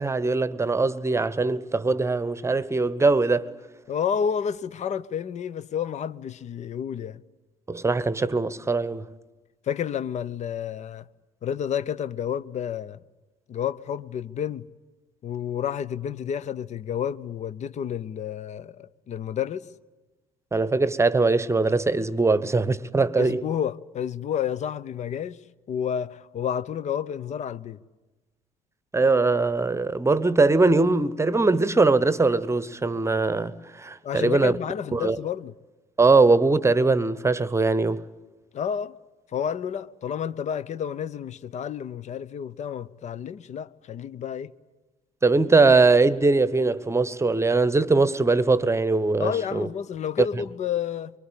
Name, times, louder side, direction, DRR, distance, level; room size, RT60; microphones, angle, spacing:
voice 1, 0.0-3.5 7.7-9.1 20.5-23.4 28.9-34.6 34.9-35.2 36.0-38.1 45.2-49.7, right 3 dB, 15° right, 1.1 m, -21 dB
voice 2, 3.9-7.2 9.6-11.1 11.4-13.0 13.5-14.7 15.2-19.7 23.2-25.4 25.7-27.8 34.0-35.5 38.5-39.0 39.3-44.5 49.2-51.1, left 8 dB, 40° left, 0.8 m, -30 dB
24.5 x 24.0 x 8.6 m
figure-of-eight pair, 55°, 18 cm